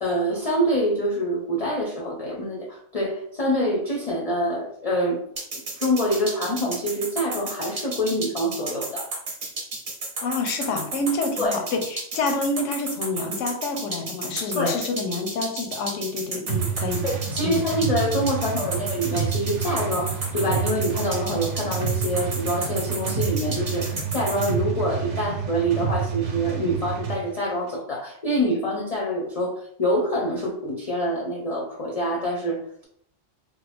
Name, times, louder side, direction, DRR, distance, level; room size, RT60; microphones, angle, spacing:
voice 1, 0.0-5.2 5.8-9.1 11.4-11.6 14.6-14.8 17.0-32.9, equal, 45° left, -2 dB, 0.5 m, -26 dB
sound 1, 5.4-24.5, right 3 dB, 50° right, 0.8 m, -32 dB
voice 2, 10.2-17.0 17.4-17.6, left 3 dB, 85° left, 4 dB, 0.9 m, -28 dB
sound 2, 16.5-27.2, right 7 dB, 75° right, 0.9 m, -29 dB
3.2 x 2.0 x 3.3 m, 0.65 s
omnidirectional pair, 1.3 m